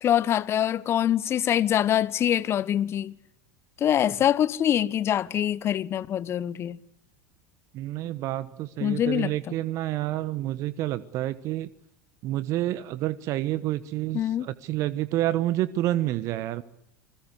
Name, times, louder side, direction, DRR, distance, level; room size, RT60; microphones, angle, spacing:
voice 1, 0.0-3.1 3.8-6.8 8.8-9.3 14.1-14.4, left 10 dB, 35° left, 1.1 m, -24 dB
voice 2, 7.7-11.7 12.2-16.6, right 14 dB, 45° right, 1.1 m, -28 dB
29.0 x 21.5 x 8.1 m
figure-of-eight pair, 80°, 7 cm